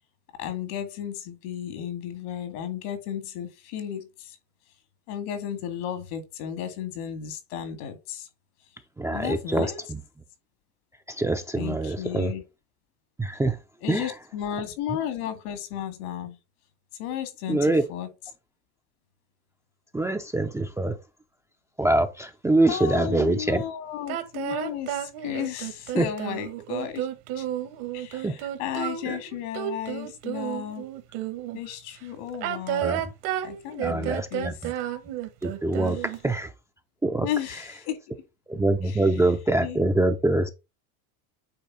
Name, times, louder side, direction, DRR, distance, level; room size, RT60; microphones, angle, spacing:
voice 1, 0.4-4.4 5.1-8.3 9.1-9.8 11.6-12.4 13.8-16.4 17.0-18.1 22.7-27.1 27.3-27.5 27.9-30.9 31.5-32.9 33.4-34.6 35.9-36.0 37.2-38.0 38.8-39.2 39.6-39.8, left 10 dB, 75° left, 2.2 m, -34 dB
voice 2, 9.0-10.0 11.1-12.3 13.2-13.6 13.9-14.1 17.5-17.8 19.9-21.0 21.8-23.6 26.0-26.1 28.2-28.4 29.1-29.2 32.8-33.0 33.8-34.7 35.4-36.5 37.0-37.3 38.5-40.5, right 2 dB, 5° right, 0.5 m, -24 dB
sound 1, 24.1-31.6 32.3-36.3, right 12 dB, 70° right, 1.6 m, -32 dB
8.6 x 3.4 x 4.7 m
supercardioid pair, 120°, 45 cm